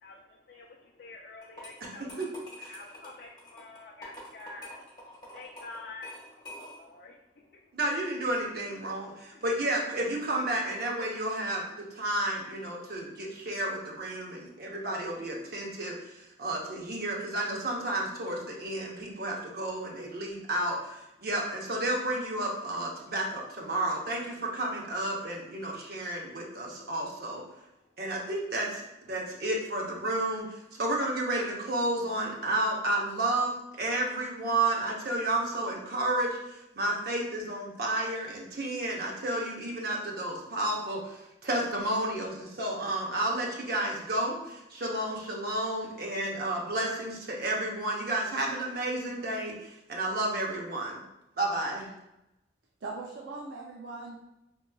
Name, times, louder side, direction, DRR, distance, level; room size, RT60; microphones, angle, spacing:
voice 1, 0.0-2.1 2.7-4.8 5.3-7.6 9.3-9.4 19.0-19.1 28.2-28.3, left 3 dB, 55° left, 0 dB, 0.4 m, -48 dB
sound 1, 1.4-7.0, equal, 20° left, 1.4 m, -47 dB
voice 2, 1.8-2.3 2.6-2.7 7.7-27.4 28.0-33.5 33.8-51.0 51.4-51.9, right 1 dB, 55° right, -1 dB, 0.8 m, -31 dB
voice 3, 52.8-54.2, right 3 dB, 85° right, -2 dB, 0.5 m, -40 dB
4.6 x 3.0 x 2.3 m, 0.93 s
head